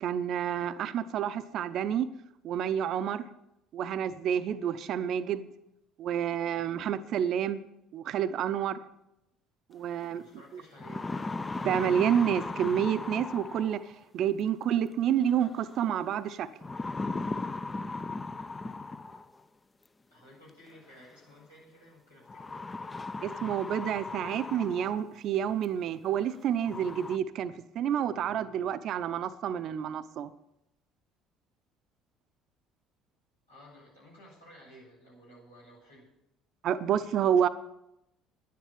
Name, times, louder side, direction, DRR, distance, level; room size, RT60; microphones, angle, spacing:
voice 1, 0.0-2.1 2.4-3.3 3.7-5.5 6.0-7.6 7.9-8.8 9.7-10.2 10.5-10.6 11.6-13.8 14.1-16.5 23.2-30.3 36.6-37.5, right 9 dB, 50° right, 12 dB, 0.7 m, -29 dB
sound 1, 10.0-10.1 10.6-14.0 15.4-15.8 16.6-19.4 20.7-20.8 22.3-25.2 25.6-25.7 26.3-26.4 26.6-27.2, left 3 dB, 20° left, 0.6 m, -37 dB
voice 2, 10.2-11.1 20.1-22.6 33.5-36.1, equal, 90° left, -8 dB, 6.7 m, -54 dB
11.0 x 10.5 x 7.1 m, 0.85 s
figure-of-eight pair, 55°, 0 cm